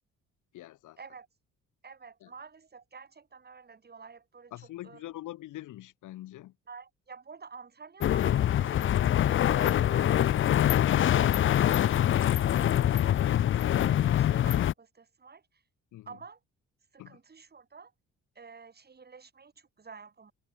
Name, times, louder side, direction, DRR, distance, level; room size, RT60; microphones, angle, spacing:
voice 1, 0.5-1.0 2.2-2.3 4.5-6.5 15.9-16.1 17.0-17.2, left 15 dB, 85° left, 2.8 m, -44 dB
voice 2, 1.8-4.5 4.8-5.1 6.7-15.6 16.1-16.4 16.9-17.9 18.4-20.3, right 5 dB, 30° right, 3.7 m, -50 dB
sound 1, 8.0-14.7, left 11 dB, 45° left, 0.4 m, -24 dB
cardioid pair, 90°, 30 cm